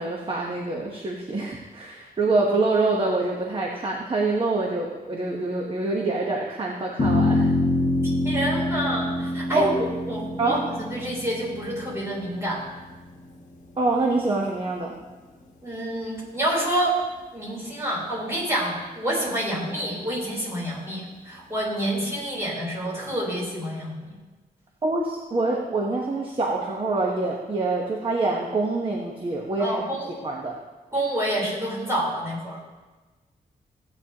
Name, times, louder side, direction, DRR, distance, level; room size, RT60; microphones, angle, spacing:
voice 1, 0.0-7.5 9.5-9.7 10.4-10.6 13.8-14.9 24.8-29.8 30.2-30.6, right 3 dB, 35° right, -1 dB, 1.1 m, -25 dB
sound 1, 7.0-13.5, left 2 dB, 50° left, 1.2 m, -26 dB
voice 2, 8.0-12.7 15.6-17.0 17.3-24.1 29.6-30.1 30.9-32.6, right 1 dB, 15° right, -6 dB, 3.7 m, -28 dB
15.5 x 8.9 x 2.9 m, 1.3 s
wide cardioid pair, 155°, 16 cm